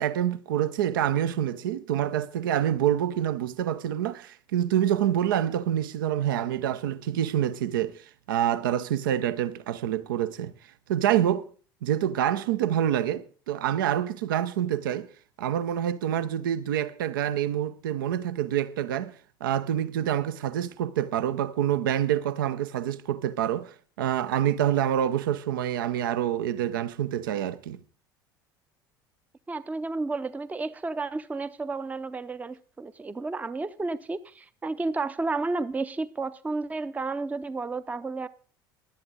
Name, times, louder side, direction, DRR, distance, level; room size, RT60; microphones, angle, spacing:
voice 1, 0.0-10.5 10.9-11.5 11.8-15.1 15.4-19.1 19.4-27.8, right 10 dB, 70° right, 0.6 m, -27 dB
voice 2, 29.5-38.3, right 3 dB, 15° right, 0.6 m, -32 dB
16.0 x 11.5 x 3.9 m
figure-of-eight pair, 65°, 12 cm